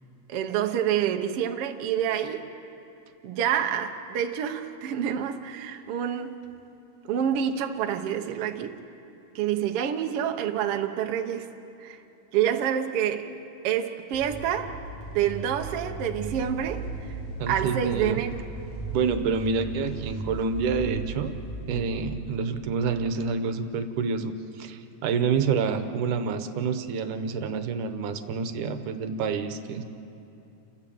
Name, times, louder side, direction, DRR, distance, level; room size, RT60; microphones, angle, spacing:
voice 1, 0.3-2.5 3.2-6.4 7.1-8.8 9.3-11.5 11.8-12.0 12.3-13.3 13.6-14.8 15.1-17.2 17.5-18.4 21.8-21.9, right 9 dB, 60° right, 5 dB, 1.6 m, -27 dB
sound 1, 14.1-22.5, right 2 dB, 55° left, 3.5 m, -36 dB
voice 2, 17.4-18.2 18.9-21.3 21.7-29.8, right 5 dB, 80° right, 8 dB, 2.5 m, -28 dB
29.5 x 14.0 x 7.7 m, 2.8 s
omnidirectional pair, 3.6 m